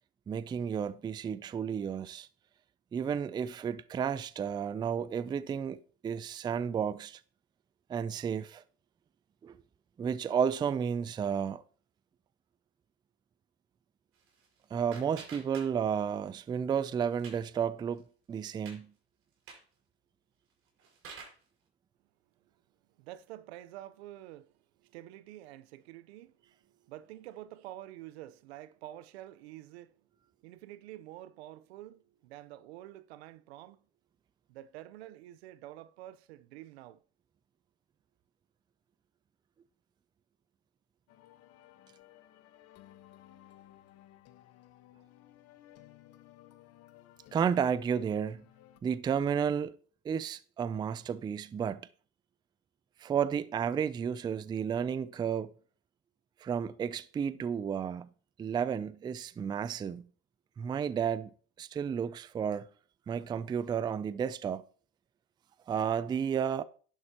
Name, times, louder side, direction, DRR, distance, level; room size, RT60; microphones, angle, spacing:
voice 1, 0.3-2.3 2.9-7.2 7.9-8.6 9.4-9.6 10.0-11.6 14.7-18.0 18.3-18.9 47.3-48.4 48.8-49.8 50.0-51.8 53.0-55.5 56.4-58.1 58.4-60.1 60.6-61.3 61.6-62.7 63.1-64.6 65.7-66.6, right 7 dB, 15° right, 0.4 m, -32 dB
sound 1, 14.1-16.2 16.5-17.5 17.9-18.0 18.4-18.8 19.3-19.7 20.5-21.5, right 5 dB, 45° right, 5.4 m, -50 dB
voice 2, 23.0-24.5 24.8-29.9 30.4-33.8 34.5-37.0, right 14 dB, 80° right, 0.8 m, -48 dB
sound 2, 41.1-48.8, left 13 dB, 50° left, 1.2 m, -57 dB
11.0 x 11.0 x 2.9 m
supercardioid pair, 120°, 32 cm